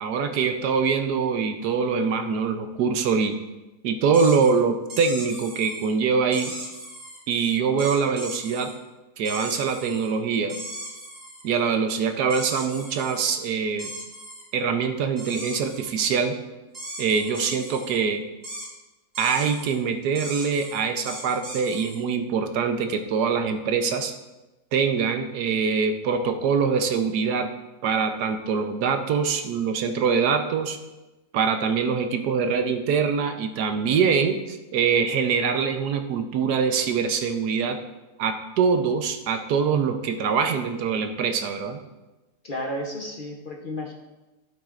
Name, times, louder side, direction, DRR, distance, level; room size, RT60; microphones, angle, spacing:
voice 1, 0.0-3.4 3.8-6.5 7.3-8.7 9.2-10.6 11.4-13.9 14.5-16.4 17.0-18.2 19.2-24.1 24.7-27.5 27.8-30.8 31.3-37.8 38.2-41.8, right 5 dB, 80° right, 6 dB, 1.3 m, -24 dB
sound 1, 4.1-4.5 4.9-5.9 6.3-7.2 7.8-8.7 9.2-10.1 10.5-11.4 12.3-13.3 13.8-14.4 15.2-16.0 16.7-18.0 18.4-18.7 19.1-19.8 20.1-22.0, right 1 dB, 35° right, 2.5 m, -38 dB
voice 2, 42.4-43.9, left 1 dB, 40° left, 0 dB, 0.8 m, -32 dB
12.5 x 7.6 x 2.5 m, 1.1 s
omnidirectional pair, 1.7 m